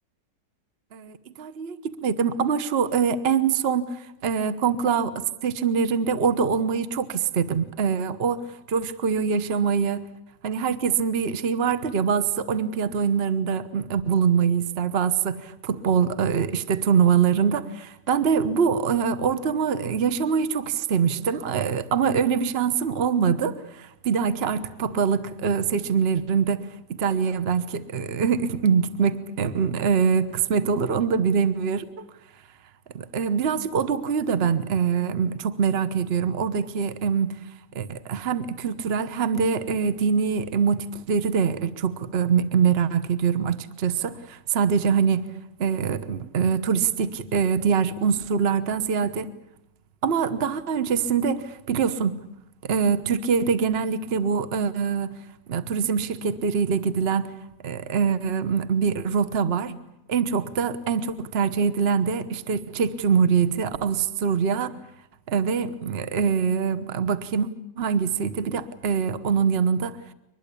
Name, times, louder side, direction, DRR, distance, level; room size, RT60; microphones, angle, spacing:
voice 1, 0.9-3.9 4.2-5.1 5.4-10.1 10.4-32.0 32.9-37.4 37.7-45.2 45.6-49.3 50.0-52.2 52.6-55.2 55.5-57.3 57.6-59.7 60.1-64.7 65.3-67.5 67.8-70.0, right 6 dB, 40° right, 1.2 m, -24 dB
24.0 x 20.5 x 8.5 m
omnidirectional pair, 1.8 m